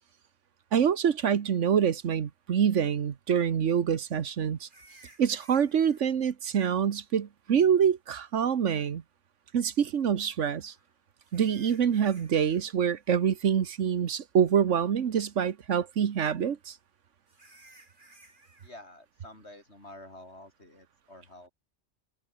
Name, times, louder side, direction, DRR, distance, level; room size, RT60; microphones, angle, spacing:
voice 1, 0.7-4.7 5.2-9.0 9.5-10.7 11.3-16.8, right 8 dB, 75° right, 1.4 m, -26 dB
sound 1, 2.7-2.8 4.6-6.0 7.8-7.9 10.5-12.6 12.9-13.3 13.7-13.8 14.4-14.5 17.3-18.7, right 2 dB, 40° right, 4.3 m, -57 dB
voice 2, 18.6-21.5, left 1 dB, 60° left, 7.7 m, -49 dB
omnidirectional pair, 1.3 m